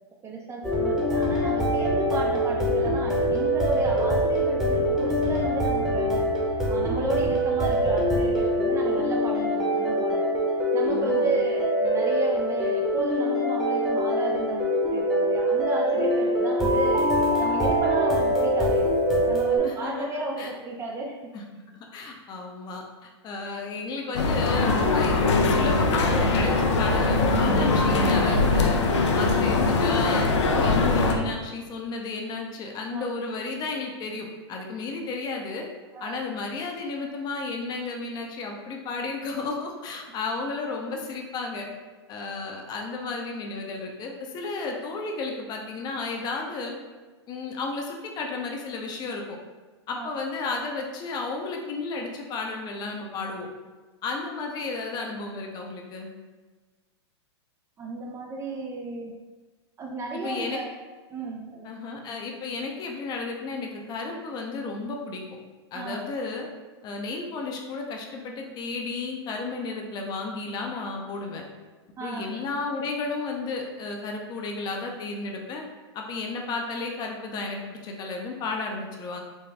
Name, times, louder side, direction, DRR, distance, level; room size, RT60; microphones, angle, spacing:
voice 1, 0.2-6.2 6.7-10.4 10.7-18.9 19.3-21.2 32.9-33.1 35.9-36.2 49.9-50.1 57.8-59.1 59.8-60.7 61.1-61.7 65.7-66.0 72.0-72.3, right 3 dB, 20° right, 0 dB, 0.3 m, -33 dB
sound 1, 0.6-19.6, equal, 5° right, 0.9 m, -24 dB
voice 2, 10.9-11.3 19.6-20.1 20.4-20.5 21.3-21.4 21.7-28.8 29.1-30.3 30.6-35.7 36.0-41.7 42.1-46.7 47.3-49.4 49.9-53.5 54.0-56.1 60.1-60.6 61.6-65.2 65.7-66.5 66.8-71.4 72.0-75.6 75.9-79.2, left 3 dB, 30° left, 1 dB, 0.5 m, -33 dB
sound 2, 24.1-31.2, left 3 dB, 80° left, 0.6 m, -22 dB
4.1 x 2.2 x 3.3 m, 1.3 s
hypercardioid pair, 125°, 15 cm